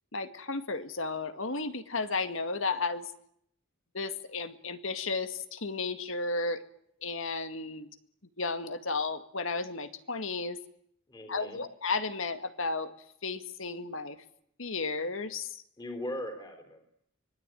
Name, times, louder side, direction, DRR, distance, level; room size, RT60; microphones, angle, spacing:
voice 1, 0.1-3.1 3.9-6.6 7.0-7.9 8.4-10.6 11.3-12.9 13.2-14.2 14.6-15.6, left 3 dB, 70° left, 10 dB, 2.1 m, -33 dB
voice 2, 11.1-11.6 15.8-17.0, left 1 dB, 20° left, 6 dB, 3.9 m, -39 dB
25.0 x 20.5 x 9.2 m, 0.70 s
head